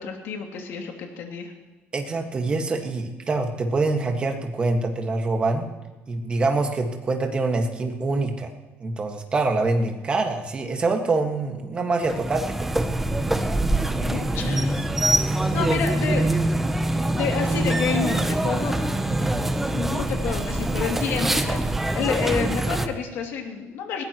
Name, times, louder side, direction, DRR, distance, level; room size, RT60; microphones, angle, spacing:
voice 1, 0.0-1.5 14.0-14.8 15.5-16.2 17.1-18.7 19.7-24.0, left 6 dB, 65° left, 2 dB, 2.7 m, -29 dB
voice 2, 1.9-5.7 6.1-8.5 8.8-12.7 19.0-19.4, right 3 dB, 25° right, 3 dB, 1.7 m, -25 dB
sound 1, 12.0-22.9, right 1 dB, 5° right, 0.7 m, -24 dB
sound 2, 18.3-20.8, left 3 dB, 20° left, 2.2 m, -42 dB
20.5 x 17.0 x 3.1 m, 1.2 s
cardioid pair, 170°, 5 cm